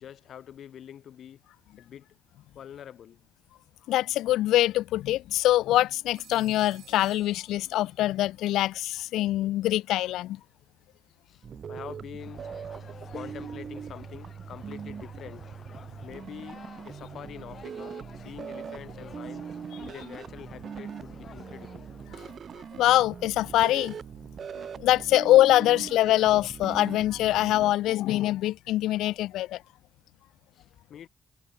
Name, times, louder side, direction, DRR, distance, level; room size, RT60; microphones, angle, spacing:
voice 1, 0.0-1.4 1.8-2.1 2.6-3.2 11.3-12.5 13.1-15.5 16.0-21.9 22.1-22.3 30.5-31.1, left 9 dB, 65° left, 2.0 m, -45 dB
voice 2, 3.9-10.4 22.7-24.0 24.8-29.6, left 15 dB, 90° left, 0.4 m, -24 dB
Telephone, 6.1-8.2, right 12 dB, 80° right, 2.4 m, -55 dB
sound 1, 11.4-27.7, right 7 dB, 50° right, 0.6 m, -41 dB
sound 2, 12.2-22.3, left 7 dB, 50° left, 2.1 m, -50 dB
cardioid pair, 90°, 0 cm